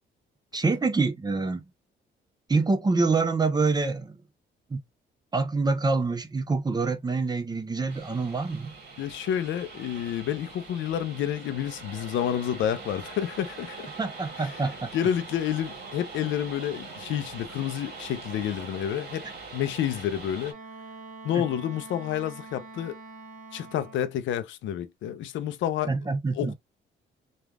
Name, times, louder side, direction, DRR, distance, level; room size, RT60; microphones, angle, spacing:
voice 1, 0.5-1.6 2.5-4.2 4.7-4.8 5.3-8.7 14.0-14.9 21.3-21.4 25.9-26.5, right 3 dB, 20° right, 0.6 m, -26 dB
sound 1, 7.9-20.5, right 4 dB, 55° right, 1.2 m, -43 dB
voice 2, 9.0-13.9 14.4-19.2 19.5-20.6 21.2-23.0 23.5-25.9 26.3-26.5, left 10 dB, 75° left, 0.5 m, -29 dB
Wind instrument woodwind instrument, 20.5-24.2, right 3 dB, 40° right, 1.1 m, -45 dB
3.3 x 2.3 x 2.2 m
cardioid pair, 90°, 20 cm